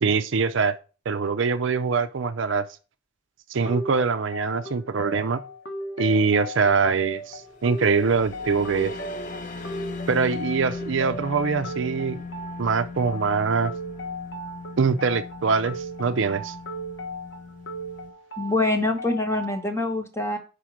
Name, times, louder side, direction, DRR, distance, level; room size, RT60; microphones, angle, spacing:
voice 1, 0.0-0.8 1.1-2.6 3.5-5.4 6.0-8.9 10.1-12.2 12.6-13.7 14.8-16.5, right 5 dB, 65° right, 0.5 m, -23 dB
sound 1, 3.7-19.6, equal, 60° left, 1.1 m, -37 dB
sound 2, 7.4-18.1, left 4 dB, 40° left, 0.8 m, -38 dB
voice 2, 18.4-20.4, left 2 dB, 15° left, 1.0 m, -25 dB
5.1 x 5.0 x 5.9 m
head